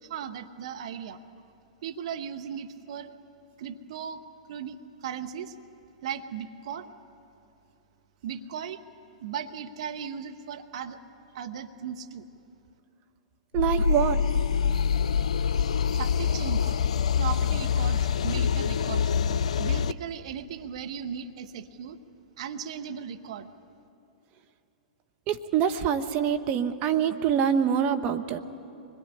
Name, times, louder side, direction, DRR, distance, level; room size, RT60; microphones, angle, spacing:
voice 1, 0.0-1.2 1.8-3.1 3.6-4.2 4.5-5.6 6.0-6.9 8.2-8.8 9.2-11.0 11.3-12.3 15.9-16.8 17.2-19.1 19.6-22.0 22.4-23.5, right 8 dB, 60° right, 7 dB, 1.1 m, -37 dB
sound 1, 13.5-19.9, left 7 dB, 70° left, 0.5 m, -25 dB
voice 2, 13.5-14.2 25.3-28.4, right 8 dB, 40° right, 7 dB, 1.2 m, -25 dB
24.5 x 21.5 x 10.0 m, 2.8 s
hypercardioid pair, 105°, 4 cm